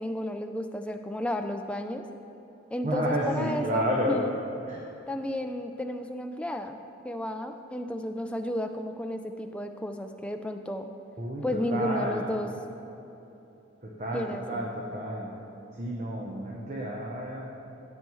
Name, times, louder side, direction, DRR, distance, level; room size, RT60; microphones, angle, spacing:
voice 1, 0.0-2.0 2.7-4.3 5.1-6.8 7.0-10.9 11.4-12.5 14.1-14.6, left 1 dB, 5° left, 5 dB, 0.4 m, -32 dB
voice 2, 2.8-4.2 4.6-4.8 11.2-12.3 13.8-15.3 15.7-17.4, equal, 35° right, -2 dB, 0.8 m, -31 dB
15.5 x 7.6 x 3.1 m, 3.0 s
head